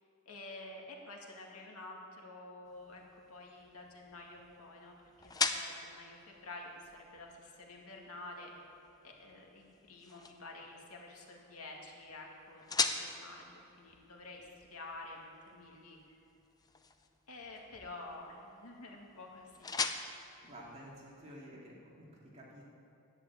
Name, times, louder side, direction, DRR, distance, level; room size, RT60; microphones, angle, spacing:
voice 1, 0.3-8.5 9.0-16.2 17.3-19.7, left 2 dB, 80° left, 0 dB, 2.2 m, -50 dB
sound 1, 2.7-21.5, left 4 dB, 15° left, 0.6 m, -43 dB
voice 2, 20.4-22.6, equal, 30° right, -5 dB, 2.9 m, -51 dB
11.0 x 9.9 x 8.6 m, 2.8 s
head